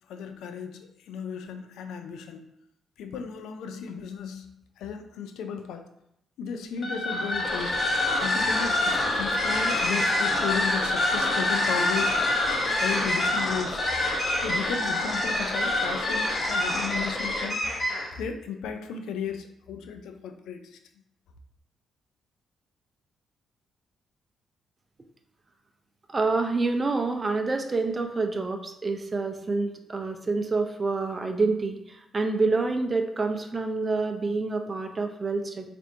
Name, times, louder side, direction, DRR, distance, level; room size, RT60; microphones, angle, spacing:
voice 1, 0.1-2.5 3.0-5.9 6.4-7.8 8.2-12.3 12.8-14.1 14.4-17.6 18.1-20.8, left 6 dB, 80° left, 6 dB, 0.4 m, -35 dB
sound 1, 6.8-18.2, left 1 dB, 40° left, 0.9 m, -26 dB
voice 2, 26.1-35.7, right 3 dB, 30° right, 6 dB, 0.5 m, -27 dB
4.3 x 2.5 x 2.7 m, 0.80 s
supercardioid pair, 60°, 0 cm